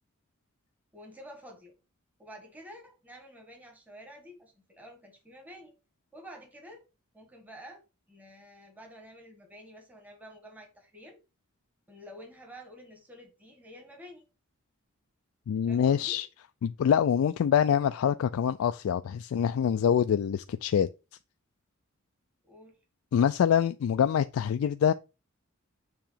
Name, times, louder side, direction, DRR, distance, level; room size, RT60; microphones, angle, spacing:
voice 1, 0.9-1.7 2.2-5.7 6.1-6.8 7.1-11.2 11.9-14.2 15.7-16.2 22.4-22.8, equal, 10° right, 1.5 m, -49 dB
voice 2, 15.5-16.3 16.6-20.9 23.1-24.9, left 8 dB, 80° left, 0.3 m, -25 dB
6.9 x 3.0 x 5.6 m
head